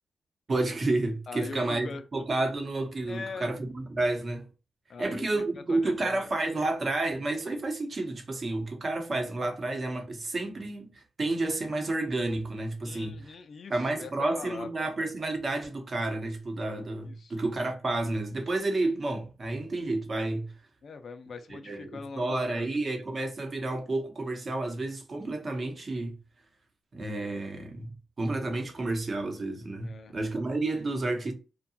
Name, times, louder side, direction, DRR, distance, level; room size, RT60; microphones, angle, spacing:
voice 1, 0.5-4.5 5.0-13.3 13.7-20.5 21.5-26.2 26.9-31.3, right 2 dB, 45° right, 0.8 m, -30 dB
voice 2, 1.3-2.0 3.1-3.5 4.9-5.3 5.7-6.2 12.8-14.9 17.1-17.5 20.8-22.7 29.8-30.2, left 5 dB, 60° left, 0.3 m, -42 dB
2.7 x 2.2 x 2.6 m
cardioid pair, 80°, 0 cm